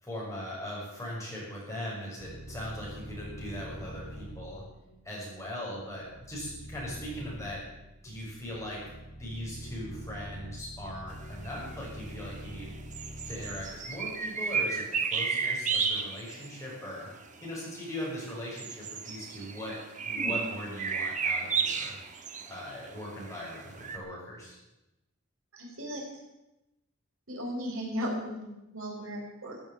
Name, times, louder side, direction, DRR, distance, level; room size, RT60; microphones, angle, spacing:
voice 1, 0.0-4.6 5.0-7.7 8.0-8.9 9.2-12.7 13.3-17.1 17.4-22.0 22.5-24.6, equal, 15° left, -5 dB, 6.9 m, -40 dB
sound 1, 2.2-14.7, equal, 60° left, 2.9 m, -45 dB
sound 2, 11.4-11.5 12.1-12.5 12.9-16.6 17.3-17.4 18.2-24.0, right 5 dB, 35° right, 1.4 m, -32 dB
voice 2, 25.5-26.0 27.3-29.6, equal, 75° right, -1 dB, 4.7 m, -36 dB
15.0 x 9.0 x 9.0 m, 0.94 s
head